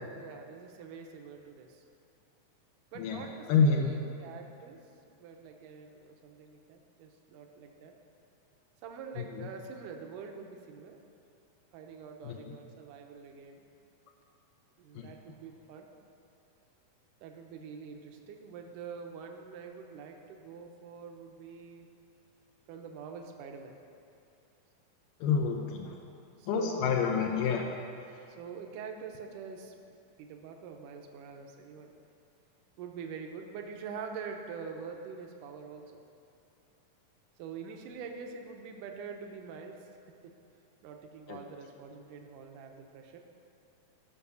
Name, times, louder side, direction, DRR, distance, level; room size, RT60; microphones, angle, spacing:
voice 1, 0.1-1.9 2.9-4.8 5.1-7.9 8.8-11.0 11.7-13.7 14.8-15.9 17.2-21.9 22.7-23.8 26.4-26.9 28.4-29.7 30.2-31.9 32.8-36.0 37.4-39.8 40.8-43.2, right 5 dB, 80° right, 3 dB, 2.4 m, -45 dB
voice 2, 3.5-3.9 9.4-9.5 12.2-12.4 15.0-15.1 25.2-26.0 26.5-27.6 41.3-41.4, left 5 dB, 85° left, 1 dB, 2.4 m, -28 dB
15.5 x 5.8 x 6.9 m, 2.6 s
omnidirectional pair, 3.7 m